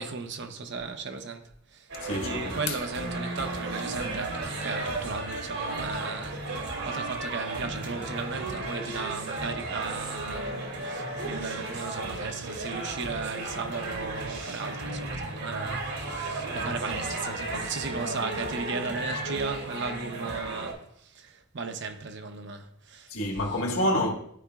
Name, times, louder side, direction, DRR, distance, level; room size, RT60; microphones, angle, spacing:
voice 1, 0.0-1.4 1.7-10.5 10.8-23.1, right 4 dB, 55° right, 0.8 m, -36 dB
sound 1, 1.9-20.7, right 2 dB, 80° right, 2.4 m, -34 dB
voice 2, 2.0-2.7 23.1-24.1, left 1 dB, 70° left, 1.6 m, -28 dB
13.0 x 4.9 x 2.4 m
head